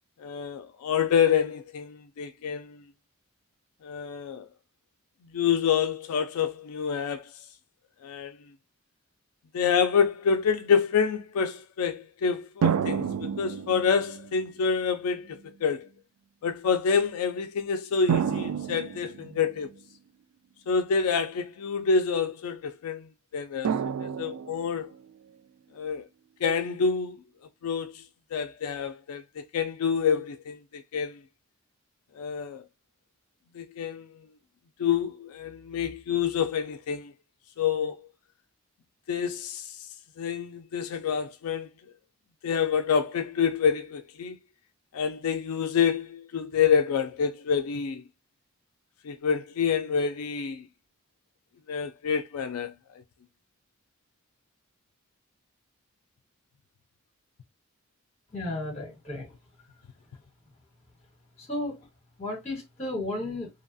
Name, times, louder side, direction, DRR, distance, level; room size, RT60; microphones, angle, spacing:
voice 1, 0.2-2.8 3.8-4.5 5.3-7.3 8.0-8.4 9.5-15.9 16.4-19.7 20.7-23.8 24.0-24.9 25.7-26.1 26.4-27.2 27.6-28.0 28.3-31.2 32.2-32.6 33.5-34.1 34.8-37.1 37.6-38.0 39.1-39.9 40.2-41.7 42.4-44.4 44.9-48.0 49.0-50.7 51.7-52.7, left 6 dB, 85° left, 0.4 m, -27 dB
sound 1, 12.6-14.4 15.3-15.4 18.1-19.8 23.6-25.0, right 7 dB, 80° right, 0.3 m, -29 dB
voice 2, 58.3-59.4 61.4-61.9 62.2-63.5, left 1 dB, 30° left, 1.2 m, -33 dB
2.8 x 2.3 x 2.5 m
head